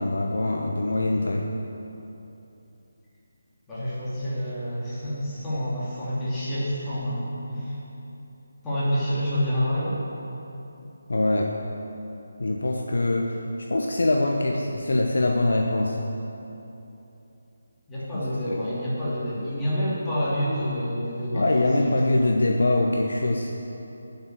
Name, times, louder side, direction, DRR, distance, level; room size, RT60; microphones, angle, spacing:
voice 1, 0.0-1.5 11.1-11.5 12.4-16.0 18.1-18.6 21.3-23.5, left 2 dB, 65° left, 0 dB, 0.9 m, -23 dB
voice 2, 3.7-7.8 8.6-10.0 17.9-22.0, equal, 10° left, -12 dB, 2.8 m, -28 dB
9.5 x 7.1 x 7.9 m, 3.0 s
figure-of-eight pair, 155°, 0 cm